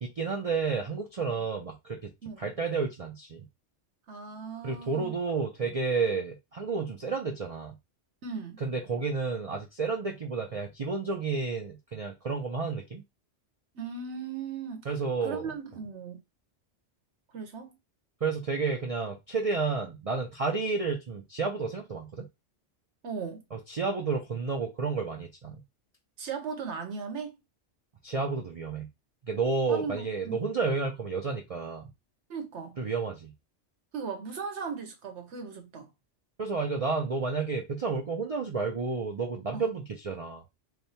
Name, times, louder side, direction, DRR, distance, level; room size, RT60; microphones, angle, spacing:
voice 1, 0.0-2.1 2.4-3.5 4.6-7.8 8.6-13.0 14.9-15.5 18.2-22.3 23.5-25.6 28.0-28.9 29.2-31.9 32.8-33.3 36.4-40.4, right 4 dB, 40° right, 0.5 m, -31 dB
voice 2, 4.1-5.1 8.2-8.6 13.7-14.9 15.2-16.2 17.3-17.8 23.0-23.4 26.2-27.4 29.7-30.4 32.3-32.8 33.9-35.9 39.5-39.7, right 5 dB, 70° right, 1.3 m, -37 dB
3.3 x 2.3 x 4.2 m
omnidirectional pair, 1.2 m